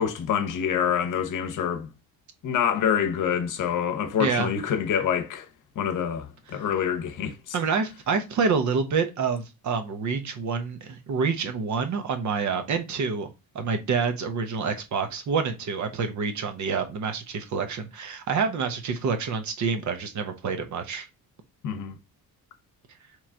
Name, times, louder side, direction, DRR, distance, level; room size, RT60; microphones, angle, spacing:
voice 1, 0.0-1.9 2.4-5.5 5.8-7.5 21.6-22.0, left 8 dB, 55° left, 0.8 m, -26 dB
voice 2, 7.5-13.3 13.5-21.1, right 5 dB, 50° right, 0.8 m, -27 dB
3.6 x 3.1 x 4.3 m
cardioid pair, 155°, 37 cm